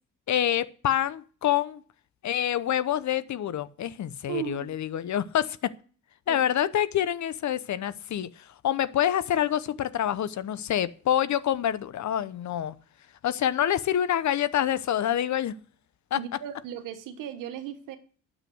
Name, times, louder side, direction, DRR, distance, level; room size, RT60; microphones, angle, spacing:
voice 1, 0.3-1.8 2.2-5.7 6.3-12.7 13.2-15.5 16.1-16.2, left 10 dB, 65° left, 0.8 m, -27 dB
voice 2, 4.3-4.7 6.3-6.4 16.1-18.0, right 10 dB, 90° right, 1.3 m, -36 dB
9.3 x 7.5 x 7.8 m
cardioid pair, 65°, 31 cm